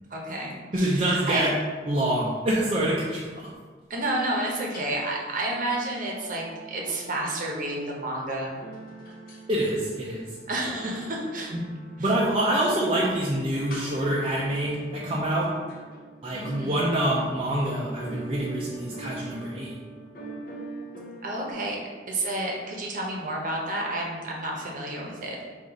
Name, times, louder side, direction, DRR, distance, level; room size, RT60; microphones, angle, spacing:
voice 1, 0.1-1.5 3.9-8.6 10.5-11.5 12.0-12.1 16.3-16.8 21.2-21.8 22.1-25.4, right 1 dB, 50° right, -1 dB, 0.8 m, -30 dB
voice 2, 0.7-1.5 1.9-3.5 9.5-10.2 11.5-11.6 12.0-15.5 16.2-19.7, right 1 dB, 35° right, -6 dB, 0.5 m, -26 dB
sound 1, 4.7-5.2 5.5-21.5, right 3 dB, 50° left, 0.7 m, -43 dB
3.9 x 2.5 x 4.6 m, 1.5 s
head